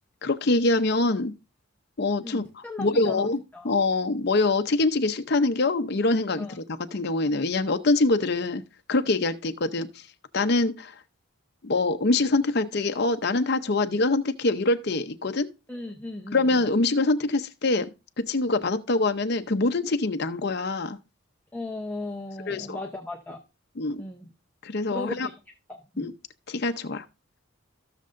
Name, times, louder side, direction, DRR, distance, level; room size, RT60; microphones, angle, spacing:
voice 1, 0.2-1.3 2.0-3.4 3.6-8.6 8.9-9.9 10.3-10.9 11.6-15.5 16.3-17.9 18.3-21.0 22.5-22.8 23.8-24.0 24.6-25.3 26.0-26.1 26.5-27.0, left 2 dB, 50° left, 0.7 m, -24 dB
voice 2, 2.2-3.7 6.4-6.6 15.7-16.6 21.5-23.4 24.0-24.3 24.9-25.3 25.7-26.1, left 2 dB, 5° left, 0.8 m, -36 dB
16.5 x 6.7 x 2.6 m
head